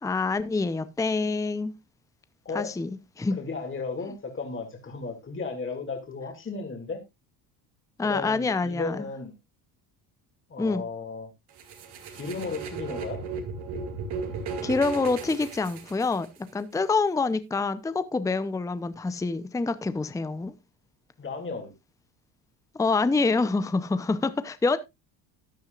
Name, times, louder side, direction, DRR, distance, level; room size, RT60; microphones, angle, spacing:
voice 1, 0.0-1.7 2.5-2.9 3.2-3.4 8.0-9.1 10.6-10.8 14.6-16.3 16.5-20.5 22.7-24.8, left 3 dB, 10° left, 0.6 m, -26 dB
voice 2, 3.4-7.0 8.0-9.3 10.5-11.3 12.1-13.2 21.2-21.7, left 4 dB, 25° left, 2.5 m, -34 dB
sound 1, 11.6-16.5, right 4 dB, 60° right, 2.7 m, -36 dB
13.5 x 9.5 x 2.4 m
supercardioid pair, 90°, 43 cm